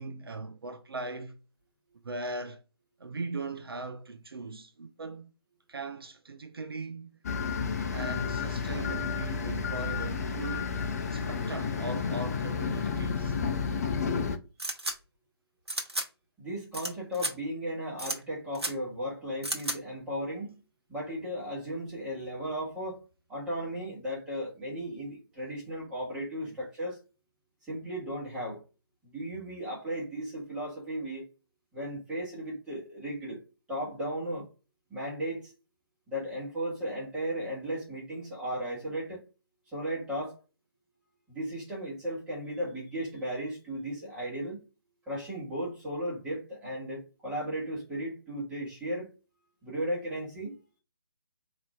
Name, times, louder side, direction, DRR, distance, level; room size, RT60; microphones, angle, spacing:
voice 1, 0.0-1.4 2.0-2.6 3.0-5.3 5.7-7.2 7.9-10.7 11.1-13.4, right 3 dB, 65° right, 0.5 m, -39 dB
sound 1, 7.2-14.4, left 5 dB, 40° left, 0.5 m, -31 dB
sound 2, 14.6-14.9 15.7-16.1 16.7-16.9 17.1-17.3 18.0-18.2 18.5-18.7 19.4-19.8, right 1 dB, 85° right, 0.9 m, -32 dB
voice 2, 16.4-20.5 20.9-23.0 23.3-27.0 27.6-28.6 29.0-31.2 31.7-33.4 33.7-34.5 34.9-35.5 36.1-39.2 39.7-40.4 41.3-44.6 45.1-49.1 49.6-50.5, equal, 5° right, 1.6 m, -35 dB
4.0 x 2.9 x 2.3 m
figure-of-eight pair, 145°, 13 cm